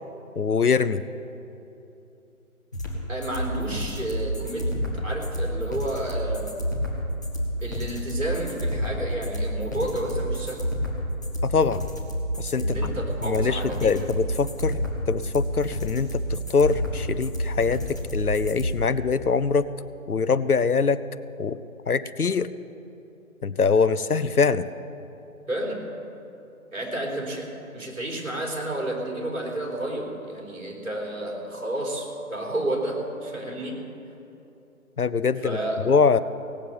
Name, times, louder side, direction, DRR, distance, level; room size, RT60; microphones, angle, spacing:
voice 1, 0.4-1.0 11.4-11.9 12.4-12.8 13.2-14.8 15.1-19.7 20.1-21.0 21.4-21.6 21.9-22.5 23.4-24.7 35.0-35.6 35.8-36.2, left 5 dB, 85° left, 15 dB, 0.7 m, -23 dB
sound 1, 2.7-18.7, equal, 15° left, 0.8 m, -29 dB
voice 2, 3.1-6.5 7.6-10.6 12.6-14.1 14.4-14.5 25.5-25.9 26.7-27.5 27.7-33.8 35.4-35.8, right 1 dB, 60° right, -2 dB, 3.9 m, -31 dB
17.5 x 7.5 x 9.1 m, 2.9 s
figure-of-eight pair, 150°, 43 cm